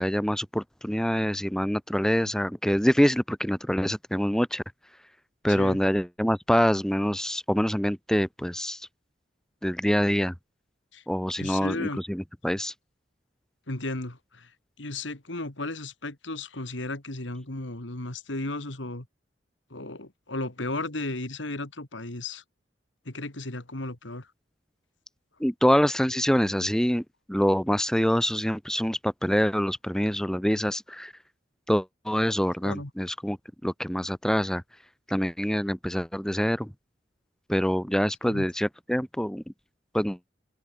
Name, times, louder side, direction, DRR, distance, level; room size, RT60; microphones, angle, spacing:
voice 1, 0.0-4.6 5.4-8.8 9.6-10.3 11.1-12.7 25.4-27.0 27.3-31.1 31.7-33.4 33.6-34.6 35.1-36.7 37.5-39.4 39.9-40.2, equal, 5° left, 0.7 m, -25 dB
voice 2, 5.5-5.8 10.9-11.0 11.4-12.0 13.7-14.5 14.8-19.1 19.7-22.4 23.1-24.3 32.6-32.9 38.2-38.5, left 2 dB, 80° left, 2.6 m, -34 dB
open air
head